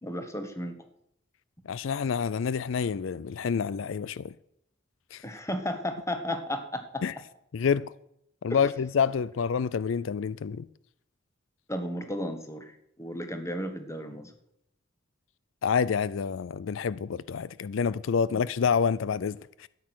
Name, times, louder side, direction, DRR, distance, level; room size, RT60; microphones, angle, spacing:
voice 1, 0.0-0.8 5.2-7.0 8.5-8.6 11.7-14.3 18.3-18.4, left 1 dB, 15° left, 1.5 m, -34 dB
voice 2, 1.7-4.3 5.1-5.2 7.0-7.1 7.5-7.9 8.4-10.7 15.6-19.7, left 6 dB, 80° left, 0.4 m, -28 dB
12.5 x 9.7 x 6.2 m
head